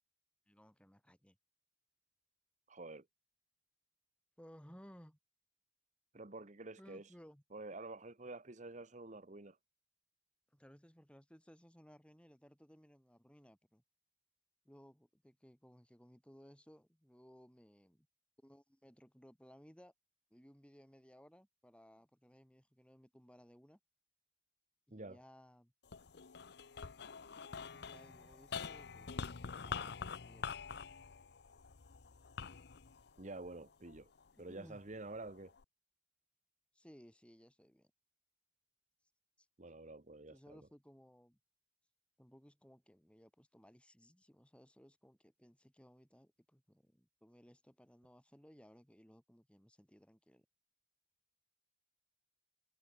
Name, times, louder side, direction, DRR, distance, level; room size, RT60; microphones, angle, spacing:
voice 1, 0.5-1.4 4.4-5.2 6.8-7.4 10.5-13.8 14.7-18.1 18.4-19.9 20.3-23.8 24.9-25.7 27.7-29.2 29.6-30.5 34.3-34.8 36.7-37.9 39.4-39.5 40.3-41.4 42.2-50.5, equal, 5° left, 6.9 m, -61 dB
voice 2, 2.7-3.0 6.1-7.1 7.5-9.6 24.9-25.2 33.2-34.1 34.4-35.5 39.6-40.6, right 2 dB, 40° right, 1.4 m, -49 dB
sound 1, 25.8-34.3 34.9-35.6, left 5 dB, 60° left, 0.7 m, -46 dB
head